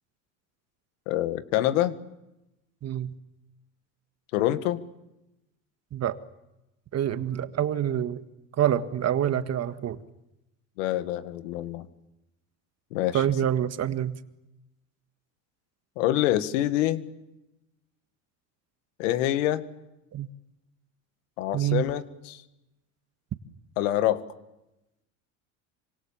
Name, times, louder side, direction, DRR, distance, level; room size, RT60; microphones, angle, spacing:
voice 1, 1.1-2.0 4.3-4.8 10.8-11.9 12.9-13.2 16.0-17.1 19.0-19.6 21.4-22.4 23.8-24.2, left 13 dB, 90° left, 12 dB, 1.8 m, -26 dB
voice 2, 2.8-3.1 5.9-6.2 6.9-8.2 8.6-10.0 13.1-14.2 20.1-20.3 21.5-21.8, right 10 dB, 45° right, 10 dB, 1.7 m, -26 dB
26.5 x 25.5 x 7.3 m, 0.93 s
supercardioid pair, 100°, 37 cm